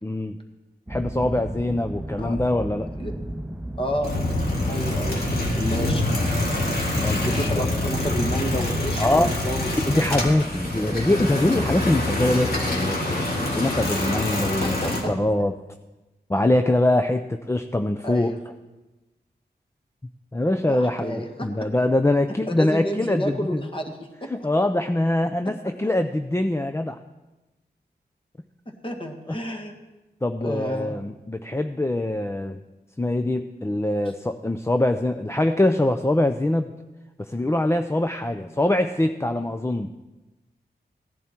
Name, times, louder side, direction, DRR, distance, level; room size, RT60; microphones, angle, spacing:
voice 1, 0.0-0.4 0.9-2.9 7.0-7.7 9.0-9.3 9.8-15.5 16.3-18.3 20.3-23.7 24.3-27.0 29.3-29.4 30.2-32.6 33.0-36.7 37.2-39.9, left 1 dB, 15° left, 7 dB, 0.5 m, -23 dB
sound 1, 0.9-11.4, right 1 dB, 10° right, 0.9 m, -34 dB
voice 2, 3.8-4.1 4.7-6.0 7.2-10.0 14.6-15.1 18.0-18.4 20.6-21.7 22.6-24.3 28.7-29.7 30.4-30.9, equal, 30° left, 3 dB, 1.8 m, -30 dB
sound 2, 4.0-15.0, left 1 dB, 65° left, 2.6 m, -26 dB
16.5 x 10.5 x 4.5 m, 1.1 s
wide cardioid pair, 70°, 17 cm